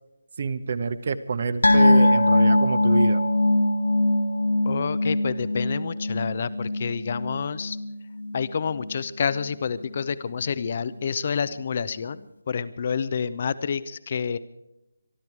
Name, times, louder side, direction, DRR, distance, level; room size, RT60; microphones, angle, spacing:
voice 1, 0.4-3.2, right 5 dB, 40° right, 15 dB, 0.9 m, -27 dB
sound 1, 1.6-8.4 8.7-8.9 9.3-9.4, left 1 dB, 70° left, 2.9 m, -21 dB
voice 2, 4.7-7.8 8.3-14.4, left 6 dB, 35° left, 16 dB, 0.7 m, -28 dB
24.0 x 12.0 x 4.7 m, 0.92 s
figure-of-eight pair, 150°, 0 cm